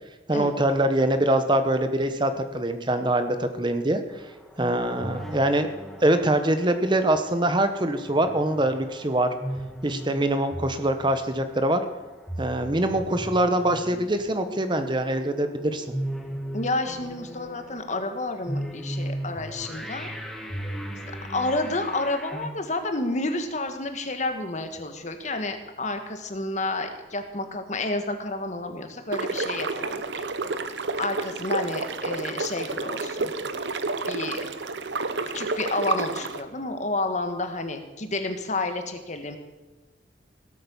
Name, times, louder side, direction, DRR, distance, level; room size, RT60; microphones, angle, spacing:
voice 1, 0.3-4.0 4.6-5.7 6.0-9.3 9.8-11.8 12.4-15.8, right 1 dB, 25° right, 9 dB, 1.0 m, -24 dB
sound 1, 4.1-22.5, equal, ahead, 1.5 m, -37 dB
voice 2, 16.5-20.1 21.0-30.2 31.0-33.3 34.1-34.4 35.3-39.4, left 2 dB, 40° left, 6 dB, 1.5 m, -30 dB
sound 2, 29.1-36.4, right 3 dB, 70° right, 0.9 m, -30 dB
17.0 x 8.5 x 7.1 m, 1.1 s
head